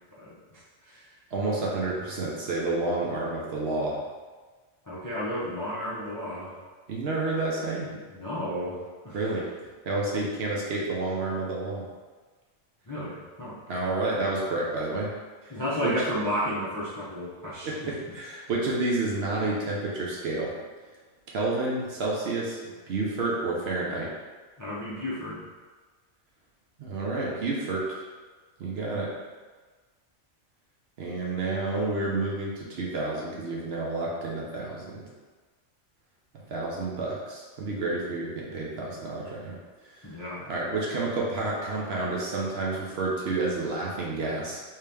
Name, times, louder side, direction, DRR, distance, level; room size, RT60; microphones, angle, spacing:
voice 1, 1.3-4.0 6.9-7.9 9.1-9.4 9.9-11.8 13.7-15.1 15.4-15.9 17.6-20.5 21.3-22.6 22.9-24.1 26.8-28.0 28.6-29.1 31.0-35.0 36.3-39.6 39.9-40.1 40.5-44.6, right 2 dB, 60° right, -4 dB, 0.9 m, -30 dB
voice 2, 4.9-6.6 7.9-9.2 12.9-13.6 15.5-17.7 18.4-18.5 24.6-25.4 40.0-40.5, equal, 25° left, -8 dB, 0.4 m, -32 dB
3.2 x 2.8 x 3.4 m, 1.4 s
omnidirectional pair, 1.3 m